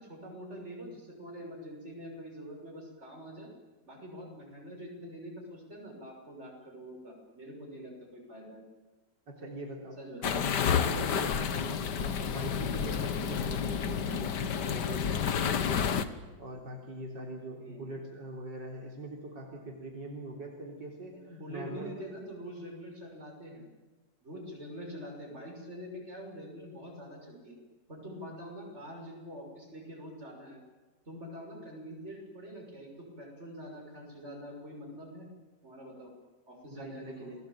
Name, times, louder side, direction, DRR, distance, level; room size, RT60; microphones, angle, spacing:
voice 1, 0.0-3.5 3.9-8.6 10.0-10.5 17.6-17.9 21.1-23.6 24.2-27.5 27.9-30.6 31.1-35.3 35.6-36.1 36.5-37.4, equal, 35° right, 0 dB, 6.9 m, -45 dB
voice 2, 9.3-15.9 16.4-22.0 36.7-37.3, right 1 dB, 75° right, 0 dB, 4.2 m, -42 dB
sound 1, 10.2-16.0, left 7 dB, 70° left, 1.8 m, -30 dB
29.0 x 20.0 x 9.0 m, 1.2 s
omnidirectional pair, 1.9 m